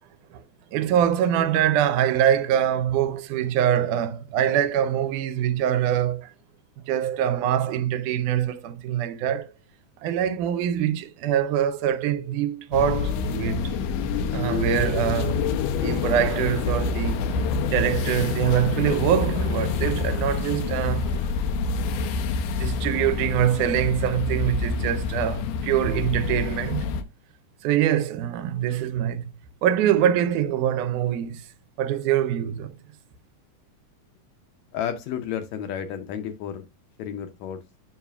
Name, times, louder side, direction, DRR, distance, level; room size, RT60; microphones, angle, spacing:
voice 1, 0.7-6.3 6.9-9.5 10.0-13.8 14.3-17.4 17.7-21.1 21.9-26.9 27.6-29.3 29.6-31.5 31.8-32.8, right 10 dB, 80° right, 2.1 m, -24 dB
sound 1, 12.7-27.0, left 5 dB, 90° left, 2.2 m, -27 dB
Human voice, 15.9-16.9 17.3-20.3 20.6-21.4, right 6 dB, 55° right, 2.0 m, -48 dB
voice 2, 34.7-36.7 37.0-37.6, left 9 dB, 75° left, 1.8 m, -31 dB
7.3 x 5.5 x 2.3 m
omnidirectional pair, 3.6 m